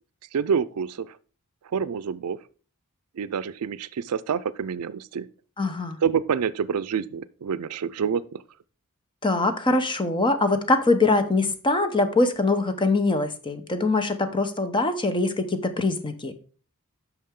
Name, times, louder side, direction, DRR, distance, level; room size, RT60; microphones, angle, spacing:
voice 1, 0.3-1.1 1.7-2.4 3.2-5.3 6.0-8.4, right 7 dB, 80° right, 0.4 m, -27 dB
voice 2, 5.6-6.0 9.2-16.3, left 2 dB, 20° left, 0.9 m, -23 dB
8.6 x 6.1 x 3.7 m
head